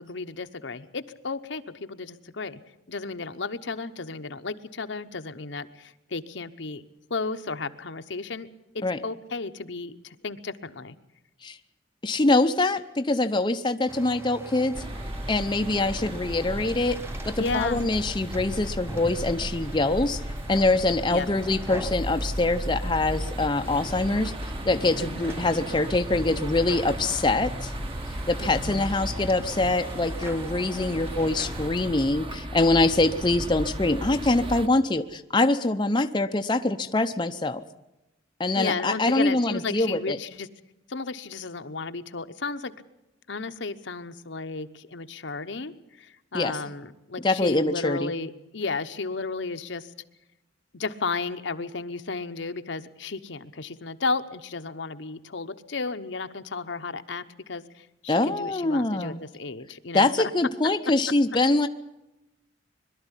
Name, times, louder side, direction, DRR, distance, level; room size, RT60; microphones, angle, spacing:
voice 1, 0.0-2.6 2.9-6.8 7.1-8.5 8.7-10.9 17.4-17.8 21.1-21.3 25.0-25.4 28.4-28.9 38.6-40.5 40.9-42.7 43.3-49.9 50.7-60.3, left 4 dB, 65° left, 9 dB, 0.9 m, -33 dB
voice 2, 12.0-14.7 15.3-17.0 17.2-20.2 20.5-27.7 28.3-37.6 38.4-40.2 46.3-46.6 47.2-48.1 58.1-59.2 59.9-61.7, left 2 dB, 25° left, 6 dB, 0.7 m, -24 dB
sound 1, 13.9-31.7, right 1 dB, 10° right, 0.9 m, -42 dB
sound 2, 14.7-34.7, equal, 30° right, 1.3 m, -35 dB
22.0 x 12.5 x 9.9 m, 0.95 s
head